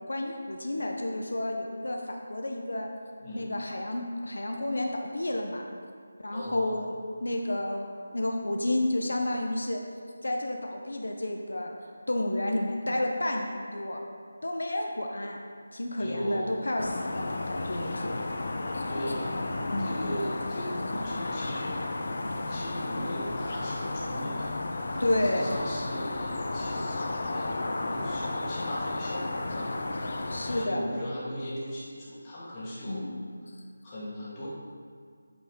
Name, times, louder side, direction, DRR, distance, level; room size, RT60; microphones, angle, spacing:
voice 1, 0.1-2.9 3.3-5.7 6.2-9.8 10.2-11.7 12.1-14.0 14.4-15.4 15.7-18.2 18.7-18.8 19.7-19.9 25.0-25.6 30.3-30.9 32.8-33.2, left 1 dB, 85° left, 2 dB, 0.7 m, -31 dB
voice 2, 3.2-3.5 6.3-6.7 16.0-16.6 18.9-19.4 19.8-21.8 22.5-24.5 24.9-29.7 30.5-33.1 33.8-34.5, equal, 20° left, -9 dB, 1.6 m, -37 dB
sound 1, 16.8-30.7, left 2 dB, 50° left, 0.5 m, -33 dB
8.0 x 4.4 x 3.7 m, 2.2 s
figure-of-eight pair, 170°, 0 cm